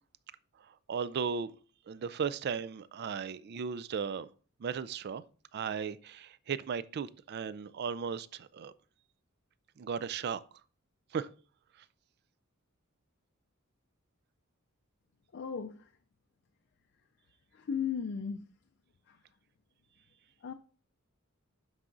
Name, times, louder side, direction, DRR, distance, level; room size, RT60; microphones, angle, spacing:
voice 1, 0.9-1.5 1.9-4.3 4.6-5.2 5.5-8.7 9.8-10.4 11.1-11.3, right 6 dB, 50° right, 0.4 m, -36 dB
voice 2, 15.3-15.9 17.5-18.4 19.1-19.2 20.4-20.5, left 7 dB, 55° left, 0.4 m, -36 dB
11.5 x 4.8 x 2.6 m
head